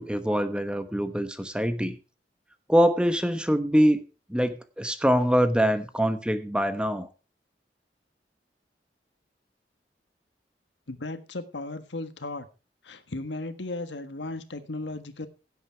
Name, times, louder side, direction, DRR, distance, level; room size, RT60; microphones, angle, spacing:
voice 1, 0.0-2.0 2.7-4.0 4.3-7.1, equal, 5° right, 10 dB, 1.1 m, -24 dB
voice 2, 10.9-12.5 12.8-15.3, left 2 dB, 90° left, 10 dB, 1.5 m, -35 dB
16.5 x 8.2 x 4.6 m, 0.32 s
head